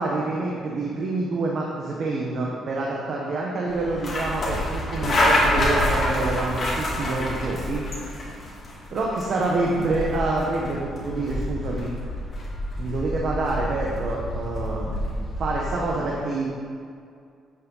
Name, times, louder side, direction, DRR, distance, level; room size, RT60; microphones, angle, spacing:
voice 1, 0.0-7.8 8.9-11.9 12.8-14.9 15.4-16.5, right 2 dB, 50° right, -3 dB, 1.2 m, -27 dB
sound 1, 3.7-16.0, left 1 dB, 35° left, 2.4 m, -27 dB
8.7 x 7.6 x 4.0 m, 2.3 s
cardioid pair, 130°, 0 cm